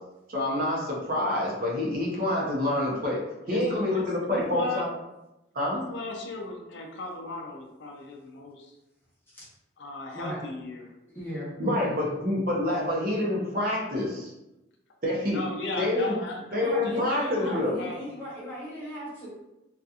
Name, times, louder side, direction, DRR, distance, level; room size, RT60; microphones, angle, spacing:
voice 1, 0.3-3.2 3.5-4.9 5.5-5.8 11.6-14.3 15.0-15.4 15.8-16.2 16.5-17.7, left 1 dB, 45° right, -3 dB, 0.6 m, -27 dB
voice 2, 3.5-4.8 5.7-8.8 9.8-10.9 15.3-18.4, left 2 dB, 65° left, 1 dB, 0.4 m, -37 dB
voice 3, 11.1-11.9 16.6-19.3, equal, 10° left, -9 dB, 0.9 m, -37 dB
2.7 x 2.3 x 2.4 m, 0.94 s
head